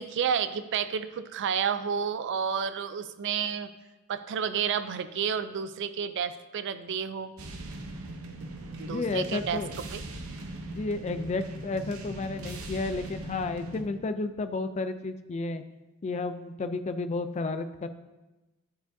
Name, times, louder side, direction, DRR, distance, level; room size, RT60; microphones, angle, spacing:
voice 1, 0.0-3.7 4.1-7.3 8.8-9.6 9.9-10.0, right 7 dB, 55° right, 12 dB, 0.4 m, -30 dB
sound 1, 7.4-13.8, right 2 dB, 80° right, 0.8 m, -40 dB
voice 2, 8.8-9.8 10.7-15.6 16.0-17.9, left 3 dB, 30° left, 10 dB, 0.3 m, -32 dB
10.0 x 4.8 x 2.6 m, 1.1 s
head